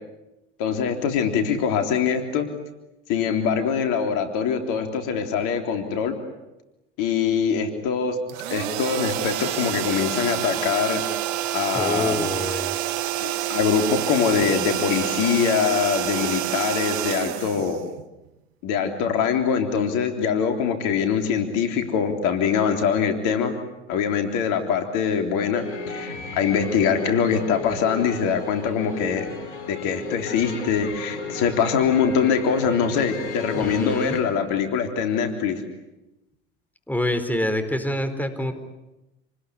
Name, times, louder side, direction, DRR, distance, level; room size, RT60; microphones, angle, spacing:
voice 1, 0.6-2.5 3.1-6.1 7.0-8.2 8.5-11.0 11.5-12.3 13.2-17.8 18.6-23.6 23.9-29.3 29.7-35.6, left 7 dB, 65° left, 6 dB, 3.7 m, -23 dB
sound 1, 8.3-18.3, right 13 dB, 70° right, 1.5 m, -28 dB
voice 2, 11.7-12.8 33.5-34.2 36.9-38.5, left 1 dB, 5° left, 8 dB, 4.5 m, -26 dB
sound 2, 25.5-34.2, left 3 dB, 90° left, 3.9 m, -34 dB
28.5 x 20.5 x 9.9 m, 0.97 s
hypercardioid pair, 70°, 33 cm